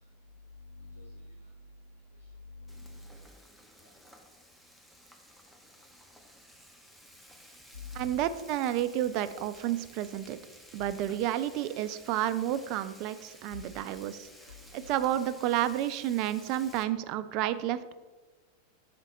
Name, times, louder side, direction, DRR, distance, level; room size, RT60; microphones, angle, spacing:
voice 1, 0.5-1.5 2.2-3.2 3.8-3.9 7.7-8.2 10.8-10.9 13.5-13.6, left 3 dB, 80° left, 0 dB, 0.7 m, -46 dB
Frying (food), 2.7-16.8, equal, ahead, 0.8 m, -54 dB
voice 2, 7.9-10.4 10.7-14.3 14.7-17.9, right 12 dB, 40° right, 13 dB, 0.4 m, -30 dB
5.0 x 4.1 x 5.8 m, 1.2 s
figure-of-eight pair, 90°, 0 cm